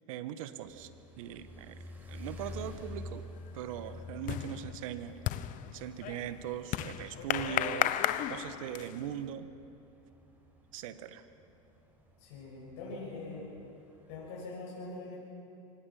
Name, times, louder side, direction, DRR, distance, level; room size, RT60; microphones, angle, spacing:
voice 1, 0.1-0.9 1.2-1.8 2.1-3.3 3.5-5.1 5.7-8.0 8.3-9.5 10.7-11.2, right 10 dB, 75° right, 11 dB, 1.4 m, -40 dB
sound 1, 0.6-14.3, left 2 dB, 10° right, 5.6 m, -50 dB
sound 2, 2.6-3.0 3.3-9.1, left 13 dB, 50° left, 0.9 m, -35 dB
voice 2, 12.2-13.5 14.1-15.2, left 3 dB, 65° left, -5 dB, 6.3 m, -43 dB
25.0 x 19.5 x 5.7 m, 2.7 s
hypercardioid pair, 100°, 18 cm